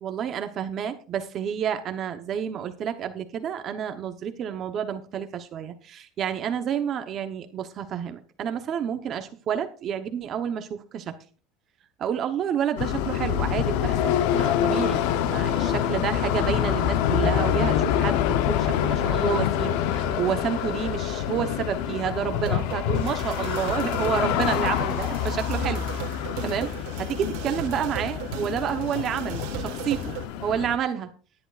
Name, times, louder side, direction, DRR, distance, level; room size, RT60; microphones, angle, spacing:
voice 1, 0.0-11.1 12.0-25.8 26.4-26.7 27.0-30.2 30.4-31.1, right 8 dB, 35° right, 7 dB, 1.0 m, -29 dB
sound 1, 12.8-30.8, left 10 dB, 65° left, 0.9 m, -26 dB
sound 2, 14.2-30.2, right 12 dB, 70° right, 1.6 m, -40 dB
18.5 x 11.0 x 2.5 m, 0.37 s
cardioid pair, 155°, 0 cm